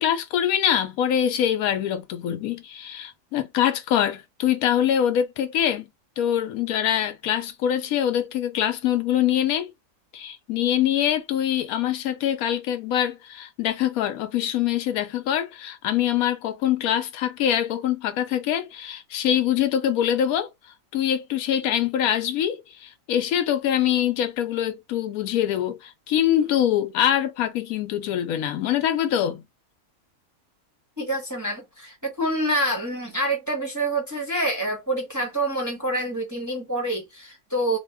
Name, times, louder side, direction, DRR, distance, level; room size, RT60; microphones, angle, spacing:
voice 1, 0.0-5.9 6.2-9.7 10.1-20.5 20.9-29.4, left 10 dB, 80° left, 1.0 m, -24 dB
voice 2, 31.0-37.8, right 1 dB, 15° right, 0.7 m, -27 dB
2.7 x 2.1 x 3.4 m
omnidirectional pair, 1.5 m